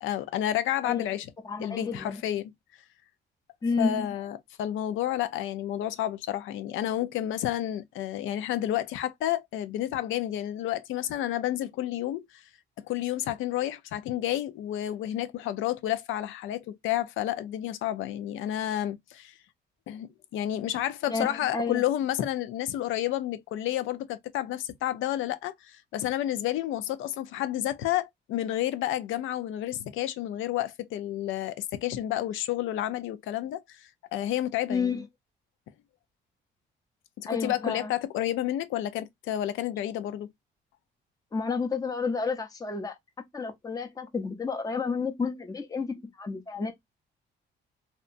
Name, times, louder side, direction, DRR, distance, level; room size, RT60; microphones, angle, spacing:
voice 1, 0.0-1.3 1.6-2.5 3.8-12.4 12.8-19.3 19.9-34.9 37.2-40.3, left 12 dB, 85° left, 0.4 m, -30 dB
voice 2, 1.4-2.2 3.6-4.1 21.1-21.8 34.7-35.0 37.3-37.9 41.3-42.9 43.3-46.7, left 4 dB, 20° left, 0.6 m, -30 dB
2.7 x 2.1 x 2.4 m
cardioid pair, 90°, 20 cm